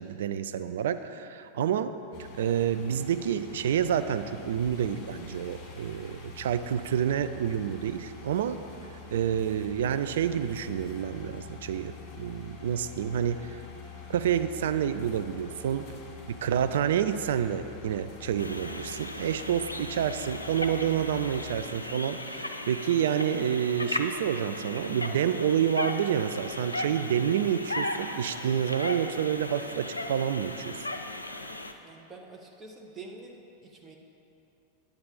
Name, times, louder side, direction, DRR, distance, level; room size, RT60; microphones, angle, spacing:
voice 1, 0.0-1.9 2.4-8.6 9.1-13.6 14.1-15.9 16.3-30.9, right 9 dB, 60° right, 10 dB, 0.3 m, -28 dB
sound 1, 2.1-21.7, left 5 dB, 40° left, 1.5 m, -46 dB
sound 2, 18.4-31.7, left 1 dB, 85° left, 0.4 m, -36 dB
voice 2, 31.8-33.4 33.6-34.0, right 3 dB, 20° right, 1 dB, 1.1 m, -46 dB
9.4 x 8.8 x 3.9 m, 2.8 s
figure-of-eight pair, 90°, 0 cm